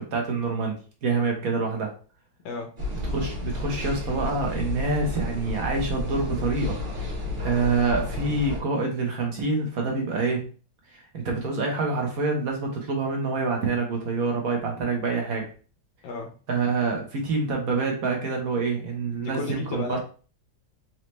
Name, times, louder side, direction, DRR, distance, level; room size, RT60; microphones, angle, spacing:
voice 1, 0.1-0.7 1.0-1.9 3.1-6.8 7.4-10.4 10.9-15.4 16.5-20.0, right 3 dB, 55° right, 1 dB, 1.1 m, -26 dB
sound 1, 2.8-8.6, left 2 dB, 30° right, 1.2 m, -31 dB
voice 2, 19.2-20.0, left 4 dB, 80° left, 4 dB, 1.4 m, -33 dB
4.3 x 2.8 x 3.0 m, 0.38 s
omnidirectional pair, 2.1 m